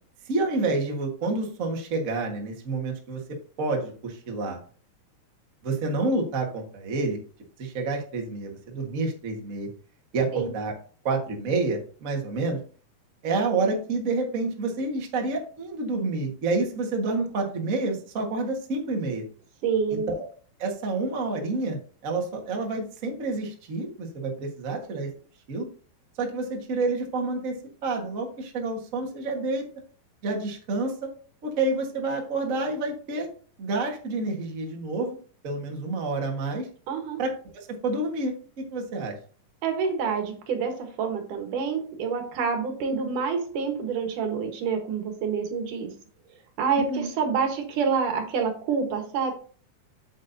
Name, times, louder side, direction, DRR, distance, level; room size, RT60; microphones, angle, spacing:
voice 1, 0.2-3.2 3.6-4.6 5.6-7.2 7.6-9.7 10.1-10.7 11.0-12.6 13.2-19.2 19.9-20.3 20.6-25.1 25.5-25.7 26.2-27.5 27.8-29.6 30.2-31.1 31.4-33.3 33.6-35.2 35.4-36.7 37.2-39.1 46.8-47.1, right 3 dB, 90° right, 1 dB, 0.7 m, -28 dB
voice 2, 19.6-20.1 36.9-37.2 39.6-45.9 46.6-49.3, right 5 dB, 65° right, 4 dB, 2.7 m, -27 dB
8.0 x 7.7 x 2.7 m, 0.40 s
omnidirectional pair, 4.4 m